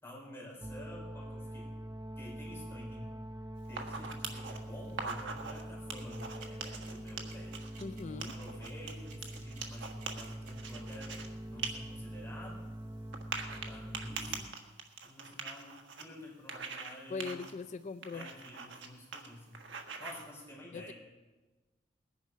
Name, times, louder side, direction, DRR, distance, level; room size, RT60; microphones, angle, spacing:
voice 1, 0.0-1.7 2.1-3.1 3.7-7.5 8.1-11.1 11.5-12.7 13.5-14.6 15.0-17.4 18.1-20.9, left 1 dB, 15° left, -5 dB, 5.1 m, -50 dB
sound 1, 0.6-14.4, right 1 dB, 20° right, 0.8 m, -44 dB
sound 2, 3.7-4.6 4.9-5.6 5.9-7.8 8.2-11.3 11.6-11.7 12.1-12.2 13.1-16.0 16.5-16.9 17.2-17.5 18.0-18.9 19.1-19.3 19.5-20.2, right 5 dB, 75° right, 1.7 m, -42 dB
sound 3, 6.0-11.2, right 5 dB, 50° right, 3.2 m, -55 dB
voice 2, 7.8-8.4 17.1-18.3 20.7-20.9, left 4 dB, 40° left, 12 dB, 0.4 m, -40 dB
19.5 x 10.5 x 5.7 m, 1.2 s
head